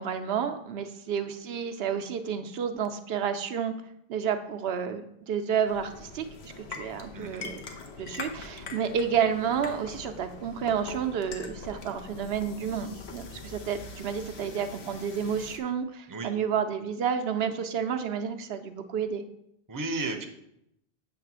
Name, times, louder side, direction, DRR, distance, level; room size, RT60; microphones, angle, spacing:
voice 1, 0.0-3.7 4.1-7.6 8.0-19.2, right 7 dB, 75° right, 7 dB, 0.8 m, -30 dB
sound 1, 5.7-15.6, left 4 dB, 85° left, 1.1 m, -43 dB
voice 2, 7.1-7.5 16.1-16.3 19.7-20.2, right 2 dB, 25° right, 4 dB, 0.6 m, -33 dB
7.9 x 3.3 x 6.0 m, 0.80 s
omnidirectional pair, 1.0 m